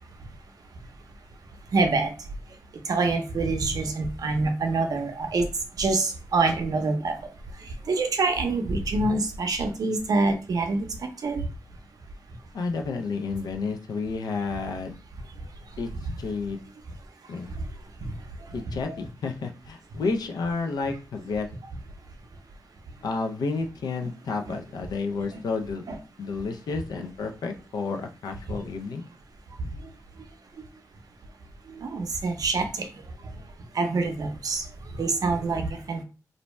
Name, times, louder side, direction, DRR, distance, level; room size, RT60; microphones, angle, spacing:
voice 1, 1.7-2.1 2.9-5.5 5.8-7.1 7.9-10.9 11.2-11.4 16.0-16.1 18.9-19.0 25.3-25.4 25.9-26.0 31.8-32.9 33.7-34.6 35.0-36.0, right 3 dB, 65° right, 6 dB, 0.6 m, -25 dB
voice 2, 12.5-15.0 15.8-15.9 16.2-16.6 17.3-17.5 18.5-21.5 23.0-25.8 26.2-29.0, left 4 dB, 80° left, 4 dB, 0.4 m, -31 dB
2.5 x 2.1 x 3.1 m, 0.33 s
cardioid pair, 85°, 7 cm